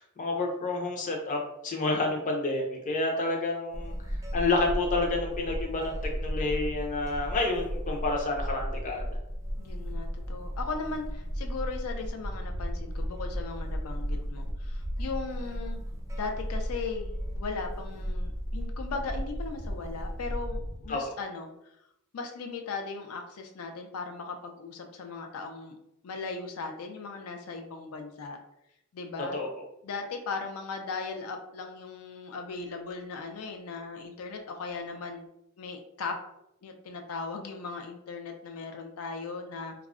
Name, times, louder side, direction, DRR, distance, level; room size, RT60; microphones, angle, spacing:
voice 1, 0.0-9.2 20.9-21.0 29.3-29.5, left 2 dB, 35° left, 1 dB, 0.5 m, -29 dB
sound 1, 3.7-21.0, equal, 15° right, 0.4 m, -35 dB
voice 2, 9.6-15.8 16.2-21.5 22.1-25.8 26.0-28.4 28.9-29.4 29.8-35.3 35.6-36.2 36.6-39.7, left 4 dB, 90° left, 4 dB, 0.4 m, -38 dB
2.3 x 2.0 x 3.5 m, 0.82 s
head